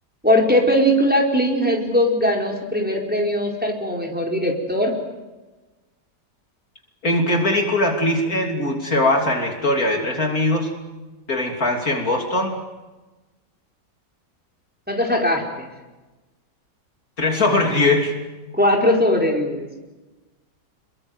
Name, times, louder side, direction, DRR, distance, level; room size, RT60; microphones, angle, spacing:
voice 1, 0.2-5.0 14.9-15.7 18.5-19.7, equal, 5° right, 0 dB, 4.5 m, -20 dB
voice 2, 7.0-10.7 11.3-12.6 17.2-18.1, left 2 dB, 50° left, 2 dB, 3.5 m, -20 dB
29.5 x 22.5 x 8.0 m, 1.1 s
omnidirectional pair, 1.9 m